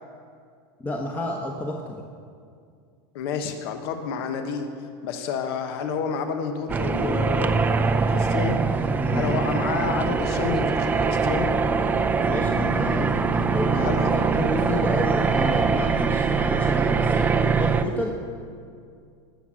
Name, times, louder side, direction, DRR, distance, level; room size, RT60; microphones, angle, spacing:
voice 1, 0.8-2.0 9.0-9.2 12.2-18.1, left 1 dB, 10° left, 0 dB, 1.0 m, -30 dB
voice 2, 3.1-4.7 5.0-8.6 9.1-11.5 13.7-14.1 15.5-15.6, left 6 dB, 65° left, 6 dB, 1.2 m, -30 dB
sound 1, 6.7-17.8, right 5 dB, 10° right, 0.5 m, -23 dB
18.5 x 7.3 x 6.3 m, 2.3 s
supercardioid pair, 145°, 13 cm